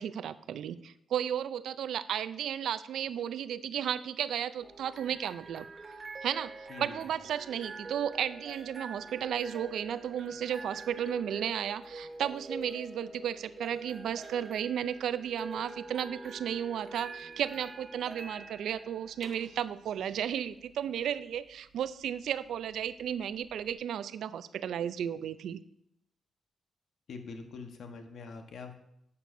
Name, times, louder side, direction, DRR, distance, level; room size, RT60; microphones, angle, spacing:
voice 1, 0.0-5.6 6.2-6.5 6.8-25.6, right 9 dB, 85° right, 15 dB, 0.4 m, -34 dB
sound 1, 4.6-23.7, right 3 dB, 35° right, 0.9 m, -45 dB
voice 2, 6.7-7.0 27.1-28.8, left 4 dB, 70° left, 5 dB, 1.1 m, -44 dB
11.0 x 8.3 x 2.6 m, 0.80 s
cardioid pair, 105°, 0 cm